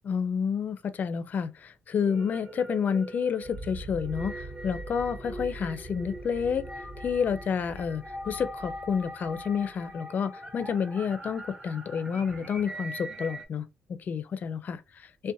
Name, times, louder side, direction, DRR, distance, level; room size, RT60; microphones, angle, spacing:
voice 1, 0.0-6.7 7.0-15.3, left 6 dB, 50° left, 0.4 m, -30 dB
sound 1, 1.9-13.5, right 1 dB, 20° right, 0.6 m, -42 dB
sound 2, 3.4-9.9, right 2 dB, 55° right, 0.6 m, -43 dB
2.6 x 2.1 x 2.6 m
cardioid pair, 100°, 4 cm